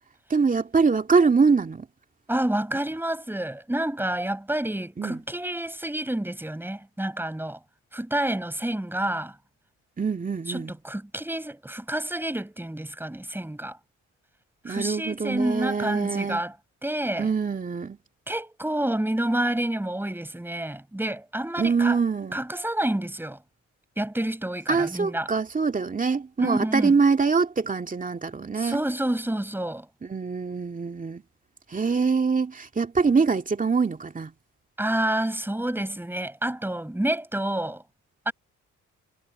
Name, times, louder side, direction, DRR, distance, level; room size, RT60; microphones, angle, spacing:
voice 1, 0.3-1.9 5.0-5.2 10.0-10.7 14.6-16.4 17.2-18.0 21.6-22.4 24.7-28.8 30.0-31.2 31.7-34.3, right 5 dB, 25° right, 2.4 m, -24 dB
voice 2, 2.3-7.6 7.9-9.3 10.5-13.8 14.7-16.5 16.8-17.3 18.3-22.0 22.3-23.4 24.0-25.3 26.4-26.9 28.6-29.9 34.8-37.8 38.3-38.4, right 1 dB, 5° right, 7.3 m, -28 dB
cardioid pair, 90°, 30 cm